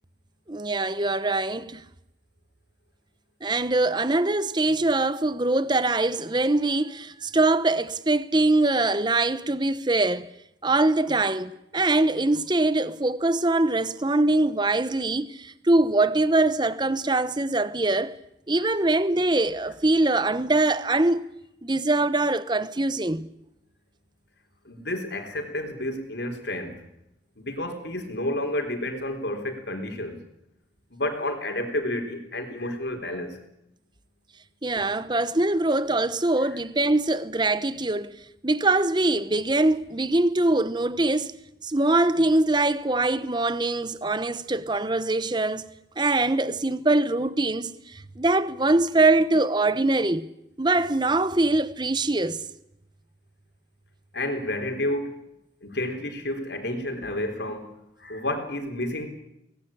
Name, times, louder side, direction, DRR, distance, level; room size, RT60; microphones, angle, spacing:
voice 1, 0.5-1.8 3.4-10.3 10.6-18.2 18.5-21.3 21.6-23.3 34.6-38.1 38.4-41.3 41.6-45.6 46.0-50.3 50.6-52.4, right 2 dB, 25° right, 0.9 m, -23 dB
voice 2, 24.6-26.8 27.4-30.2 30.9-33.4 36.4-36.6 54.1-55.1 55.6-57.7 58.0-59.1, left 1 dB, 60° left, 3.9 m, -30 dB
24.0 x 19.0 x 8.7 m
head